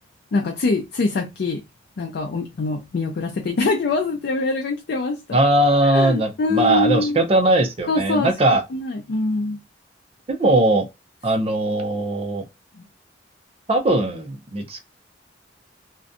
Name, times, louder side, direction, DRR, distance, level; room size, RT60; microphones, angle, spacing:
voice 1, 0.3-1.6 2.0-5.4 5.8-7.2 7.9-8.3 8.7-9.6 12.8-12.9, left 3 dB, 60° left, 0.4 m, -24 dB
voice 2, 5.3-8.6 10.4-10.9 11.2-12.4 13.7-14.9, right 1 dB, 35° right, 0.5 m, -19 dB
2.6 x 2.1 x 2.5 m
head